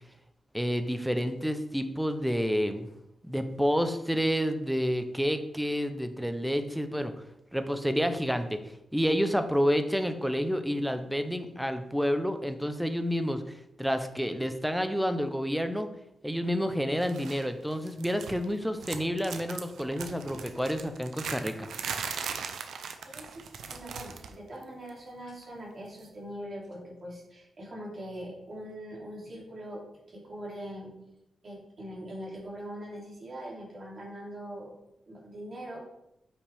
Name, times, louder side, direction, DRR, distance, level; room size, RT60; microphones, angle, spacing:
voice 1, 0.5-2.9 3.2-7.1 7.5-8.6 8.9-15.9 16.2-21.7, equal, ahead, 8 dB, 0.7 m, -29 dB
sound 1, 17.0-17.5 17.7-18.5 18.8-24.4 24.6-24.9 26.0-26.1, right 6 dB, 90° right, 0.7 m, -39 dB
voice 2, 23.0-23.4 23.7-29.8 30.1-30.9 31.4-34.7 35.1-35.8, equal, 45° right, -3 dB, 2.9 m, -42 dB
8.5 x 5.9 x 3.5 m, 0.84 s
wide cardioid pair, 110°, 0 cm